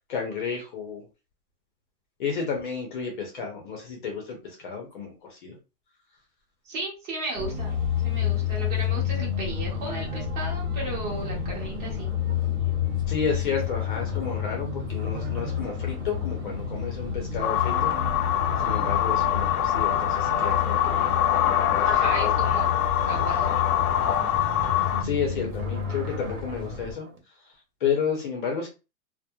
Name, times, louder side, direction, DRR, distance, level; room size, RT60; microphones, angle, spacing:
voice 1, 0.1-1.1 2.2-5.6 13.1-17.9 18.6-21.1 21.4-22.3 25.0-27.0 27.8-28.7, left 6 dB, 35° left, 1 dB, 0.6 m, -31 dB
voice 2, 6.7-7.7 8.0-12.1 21.8-22.8 23.0-23.5, right 2 dB, 30° right, -3 dB, 1.1 m, -34 dB
sound 1, 7.3-26.9, left 8 dB, 10° right, 0.7 m, -30 dB
sound 2, 10.9-17.3 17.6-19.6 20.0-27.2, right 4 dB, 70° right, 1.2 m, -47 dB
sound 3, 17.4-25.0, left 11 dB, 85° left, 0.5 m, -24 dB
2.9 x 2.0 x 2.2 m, 0.30 s
hypercardioid pair, 160°, 43 cm